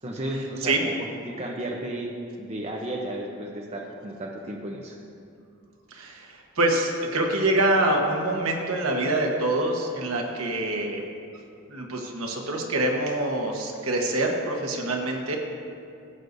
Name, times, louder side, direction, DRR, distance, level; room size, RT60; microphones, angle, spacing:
voice 1, 0.0-0.9 1.3-5.0, right 1 dB, 30° right, 0 dB, 0.7 m, -33 dB
voice 2, 5.9-11.0 11.7-15.4, right 1 dB, 75° right, 1 dB, 1.2 m, -25 dB
16.0 x 7.9 x 2.7 m, 2.4 s
head